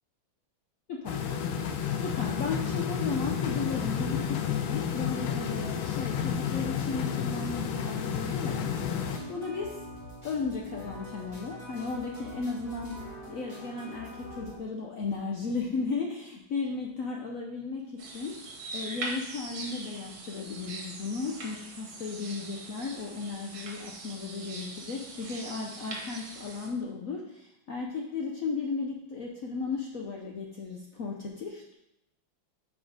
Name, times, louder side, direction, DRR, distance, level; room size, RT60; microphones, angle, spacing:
voice 1, 0.9-1.2 2.0-8.7 9.3-9.8 10.2-13.0 13.3-18.5 18.7-31.7, left 4 dB, 70° left, 0 dB, 0.8 m, -35 dB
sound 1, 1.1-9.2, left 7 dB, 85° left, 1.5 m, -31 dB
sound 2, 8.7-14.6, equal, 25° left, 1.6 m, -44 dB
sound 3, 18.0-26.7, right 2 dB, 55° right, 1.4 m, -42 dB
5.8 x 4.2 x 5.1 m, 0.85 s
omnidirectional pair, 2.1 m